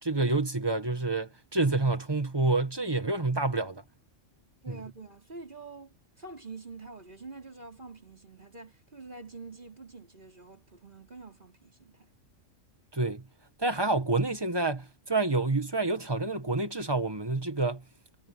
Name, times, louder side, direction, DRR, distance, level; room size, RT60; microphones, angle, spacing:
voice 1, 0.0-3.8 4.7-4.8 12.9-13.2 13.6-17.8, right 3 dB, 20° right, 1.8 m, -28 dB
voice 2, 4.6-12.1, right 3 dB, 40° right, 4.5 m, -46 dB
omnidirectional pair, 1.3 m